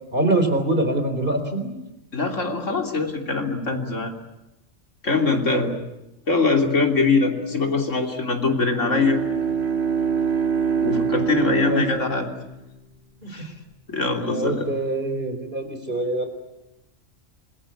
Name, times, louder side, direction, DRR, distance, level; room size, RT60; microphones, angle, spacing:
voice 1, 0.1-1.7 11.6-12.3 13.2-13.4 14.1-16.3, right 2 dB, 45° right, 7 dB, 4.3 m, -25 dB
voice 2, 2.1-4.1 5.0-5.7 6.3-9.2 10.8-12.3 13.3-13.5 13.9-14.7, left 4 dB, 80° left, 3 dB, 3.6 m, -22 dB
Bowed string instrument, 8.5-12.8, right 7 dB, 60° right, 2.5 m, -25 dB
25.5 x 22.0 x 8.7 m, 0.98 s
omnidirectional pair, 1.3 m